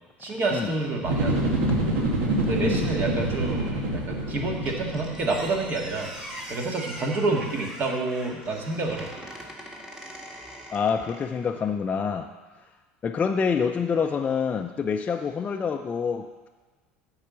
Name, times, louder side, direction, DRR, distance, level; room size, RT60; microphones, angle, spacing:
voice 1, 0.2-1.5 2.4-6.1 6.5-9.1, right 3 dB, 40° right, 0 dB, 1.9 m, -28 dB
sound 1, 1.0-6.2 6.5-6.6, right 1 dB, 75° right, 1.7 m, -26 dB
Squeak, 4.7-11.5, equal, 10° right, 1.9 m, -42 dB
voice 2, 10.7-12.3 13.0-16.5, left 6 dB, 30° left, 4 dB, 0.5 m, -27 dB
8.6 x 4.8 x 7.0 m, 1.3 s
hypercardioid pair, 90°, 5 cm